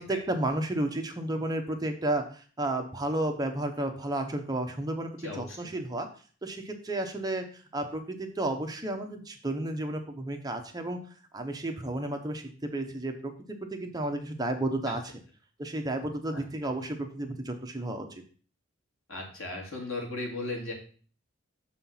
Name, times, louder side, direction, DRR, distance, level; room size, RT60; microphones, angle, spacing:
voice 1, 0.0-6.1 6.4-11.0 11.3-15.1 15.6-18.2, right 1 dB, 20° right, 4 dB, 0.8 m, -32 dB
voice 2, 5.2-5.7 16.3-16.4 19.1-20.7, left 2 dB, 85° left, 0 dB, 2.5 m, -36 dB
6.7 x 4.4 x 5.6 m, 0.42 s
head